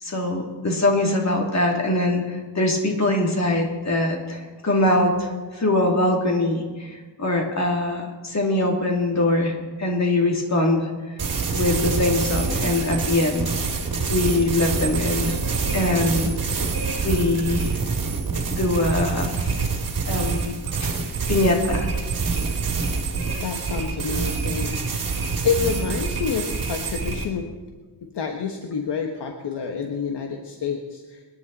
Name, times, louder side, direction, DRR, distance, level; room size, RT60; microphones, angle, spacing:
voice 1, 0.0-10.9 11.5-13.5 14.1-15.4 15.7-16.7 17.0-17.8 18.5-19.6 20.1-21.9, left 2 dB, 35° left, 1 dB, 2.8 m, -23 dB
sound 1, 11.2-27.3, right 4 dB, 45° right, 2.5 m, -26 dB
voice 2, 23.4-25.0 25.4-27.5 28.1-31.2, left 6 dB, 60° left, 3 dB, 1.3 m, -28 dB
25.5 x 10.5 x 4.1 m, 1.4 s
wide cardioid pair, 130°, 46 cm